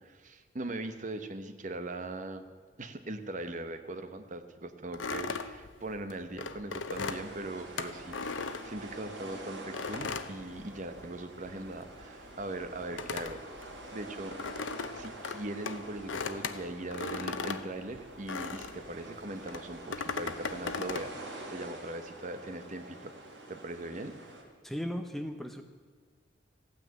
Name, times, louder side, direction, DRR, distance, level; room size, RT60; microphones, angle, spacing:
voice 1, 0.0-2.4 2.8-13.4 13.9-14.4 14.9-21.1 21.5-23.1 23.5-24.1, right 2 dB, 40° right, 9 dB, 1.0 m, -40 dB
sound 1, 4.9-9.2 9.7-11.2 11.5-18.9 19.5-21.1, left 4 dB, 85° left, 0.8 m, -38 dB
sound 2, 6.9-24.4, right 2 dB, 75° right, 3.0 m, -47 dB
voice 2, 24.6-25.6, equal, ahead, 6 dB, 0.7 m, -36 dB
15.0 x 9.5 x 8.9 m, 1.5 s
head